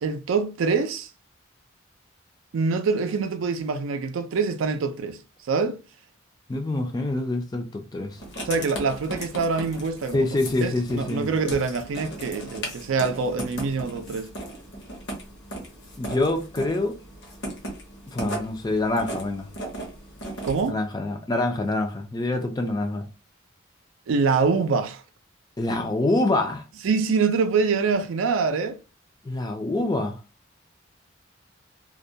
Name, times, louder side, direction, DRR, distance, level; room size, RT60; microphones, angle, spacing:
voice 1, 0.0-1.1 2.5-5.2 5.5-5.8 8.5-10.3 10.6-14.3 20.4-20.8 24.1-25.0 26.8-28.8, right 4 dB, 80° right, 0.4 m, -25 dB
voice 2, 6.5-8.2 10.1-11.3 16.0-17.0 18.1-19.5 20.7-23.1 25.6-26.6 29.2-30.2, left 2 dB, 20° left, 0.3 m, -26 dB
Writing, 8.2-20.7, right 1 dB, 55° left, 0.7 m, -37 dB
2.2 x 2.1 x 2.6 m
head